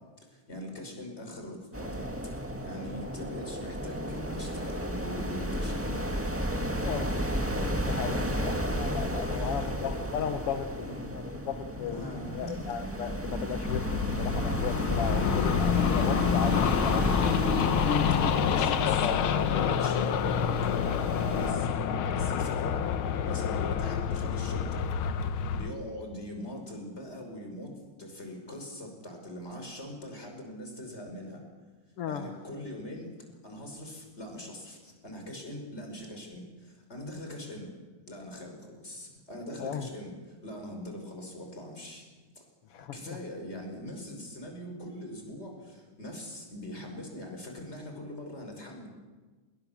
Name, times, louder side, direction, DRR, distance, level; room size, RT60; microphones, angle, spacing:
voice 1, 0.3-2.1 2.5-6.1 8.0-8.7 9.3-9.9 10.8-11.2 11.8-12.7 18.2-19.1 19.4-22.9 23.2-24.9 25.5-31.5 32.0-33.1 33.4-37.7 38.1-42.4 42.7-48.9, left 1 dB, 20° left, 3 dB, 5.6 m, -42 dB
sound 1, 1.7-21.5, equal, 15° right, 0.5 m, -32 dB
voice 2, 7.8-17.5 17.8-19.8 32.0-32.3 39.6-39.9 42.7-43.2, left 8 dB, 65° left, 8 dB, 1.4 m, -36 dB
sound 2, 13.6-25.7, left 8 dB, 90° left, 1.1 m, -28 dB
28.5 x 21.5 x 7.2 m, 1.3 s
omnidirectional pair, 3.8 m